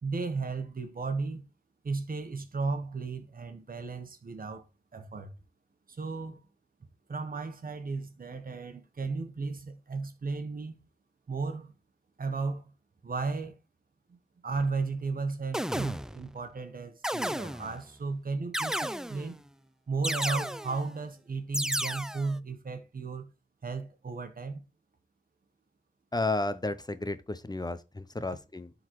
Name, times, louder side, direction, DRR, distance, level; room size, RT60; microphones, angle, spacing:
voice 1, 0.0-1.4 1.8-4.6 4.9-5.3 5.9-6.4 7.1-10.8 11.3-11.8 12.2-12.7 13.0-13.6 14.1-14.2 14.4-19.4 19.9-23.3 23.6-24.6, right 4 dB, 75° right, 1.2 m, -34 dB
sound 1, 14.6-14.7 15.5-16.3 17.0-17.8 18.5-19.4 20.0-20.9 21.5-22.4, equal, 5° right, 0.4 m, -33 dB
voice 2, 26.1-28.7, left 2 dB, 25° left, 0.7 m, -32 dB
12.0 x 4.0 x 3.1 m
cardioid pair, 50°, 15 cm